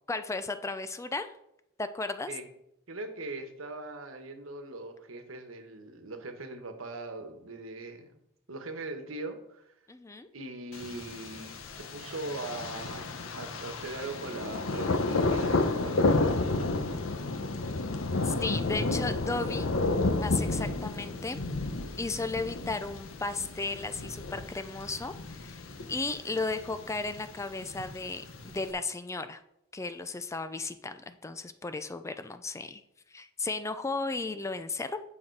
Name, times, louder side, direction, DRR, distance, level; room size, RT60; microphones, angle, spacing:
voice 1, 0.1-1.3 1.8-2.3 9.9-10.3 18.2-19.7 20.2-21.4 22.0-25.6 25.9-29.4 29.7-32.8 33.1-35.0, left 3 dB, 15° left, 10 dB, 0.4 m, -35 dB
voice 2, 2.9-8.1 8.5-9.7 10.3-16.7, right 2 dB, 80° right, 6 dB, 1.2 m, -40 dB
Thunder, 10.7-28.7, left 2 dB, 75° left, 0.8 m, -31 dB
8.8 x 5.8 x 4.6 m, 0.81 s
head